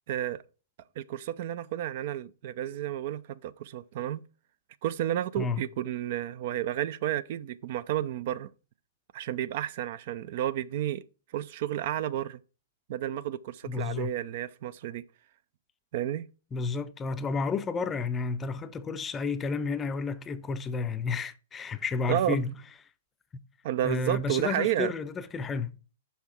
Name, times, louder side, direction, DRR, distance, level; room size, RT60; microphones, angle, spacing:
voice 1, 0.1-0.4 1.0-4.2 4.8-8.5 9.1-11.0 11.3-12.4 12.9-15.0 15.9-16.3 22.1-22.4 23.6-24.9, right 12 dB, 50° right, 0.4 m, -31 dB
voice 2, 13.6-14.1 16.5-22.5 23.3-23.4 23.8-25.7, left 4 dB, 15° left, 0.5 m, -31 dB
6.0 x 5.7 x 4.4 m
figure-of-eight pair, 110°, 0 cm